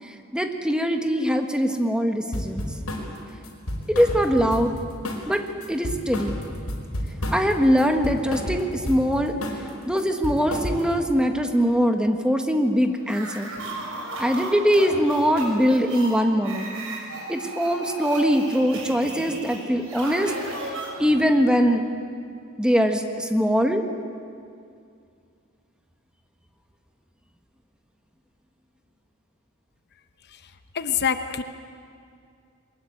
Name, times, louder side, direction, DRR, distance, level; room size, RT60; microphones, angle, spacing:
voice 1, 0.3-2.6 3.9-4.7 5.2-6.4 7.3-9.3 9.9-13.5 14.2-16.7 17.3-20.3 21.0-21.9 22.6-23.9, equal, 5° right, 5 dB, 1.5 m, -22 dB
sound 1, 2.3-3.1 3.4-4.8 5.0-5.3 5.6-7.5 7.8-9.1 9.4-9.7 10.0-11.0, left 1 dB, 85° left, 5.0 m, -31 dB
sound 2, 13.0-21.3, right 2 dB, 65° right, 6.3 m, -35 dB
voice 2, 30.3-31.4, left 7 dB, 50° left, 9 dB, 0.9 m, -27 dB
22.5 x 20.5 x 9.1 m, 2.4 s
head